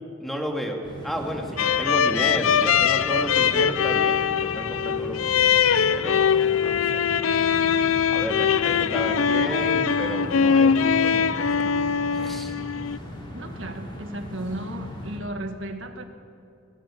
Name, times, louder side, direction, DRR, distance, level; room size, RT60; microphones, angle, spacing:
voice 1, 0.2-5.5 5.9-7.2 8.1-11.7 12.1-12.6, equal, ahead, 1 dB, 2.2 m, -32 dB
sound 1, 0.8-15.2, equal, 25° left, 4.4 m, -39 dB
sound 2, 1.6-13.0, left 7 dB, 85° left, 0.6 m, -22 dB
voice 2, 13.3-16.1, right 1 dB, 65° right, 6 dB, 1.7 m, -34 dB
19.0 x 16.5 x 8.5 m, 2.6 s
head